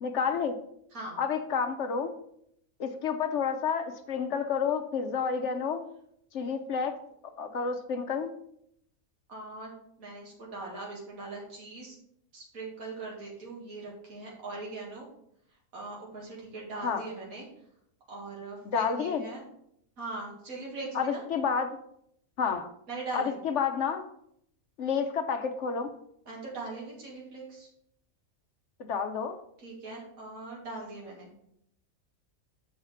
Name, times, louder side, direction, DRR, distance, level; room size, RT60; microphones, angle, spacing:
voice 1, 0.0-0.5 1.2-2.1 2.8-5.9 6.3-6.9 7.4-8.3 16.8-17.0 18.7-19.2 20.9-21.7 22.4-22.7 23.1-24.0 24.8-25.9 28.8-29.4, left 6 dB, 60° left, 8 dB, 0.9 m, -30 dB
voice 2, 9.3-9.7 10.0-12.0 12.3-15.1 15.7-17.5 18.1-19.4 20.0-21.2 22.9-23.4 26.3-27.7 29.6-31.3, right 3 dB, 75° right, -3 dB, 2.3 m, -40 dB
7.1 x 4.8 x 5.7 m, 0.73 s
omnidirectional pair, 1.5 m